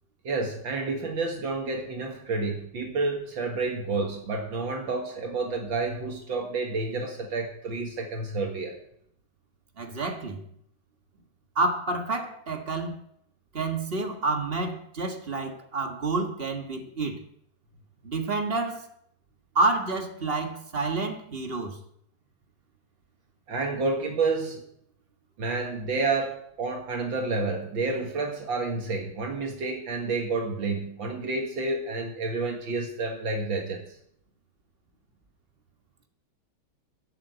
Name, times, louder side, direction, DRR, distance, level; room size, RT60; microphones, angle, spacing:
voice 1, 0.2-8.8 23.5-24.6 25.4-33.8, right 3 dB, 70° right, 2.4 m, -29 dB
voice 2, 9.8-10.4 11.5-13.0 13.5-17.2 18.0-18.9 19.5-21.8, right 3 dB, 30° right, 1.6 m, -29 dB
12.0 x 7.8 x 7.9 m
omnidirectional pair, 2.2 m